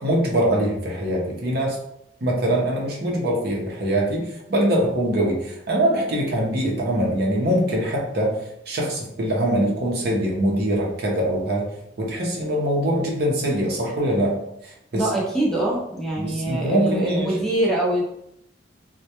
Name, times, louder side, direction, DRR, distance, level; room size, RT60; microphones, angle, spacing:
voice 1, 0.0-1.8 2.2-11.7 12.0-15.1 16.2-17.4, right 1 dB, 55° right, -2 dB, 0.6 m, -23 dB
voice 2, 14.9-18.0, right 1 dB, 5° left, -4 dB, 0.6 m, -24 dB
2.2 x 2.1 x 2.8 m, 0.79 s
head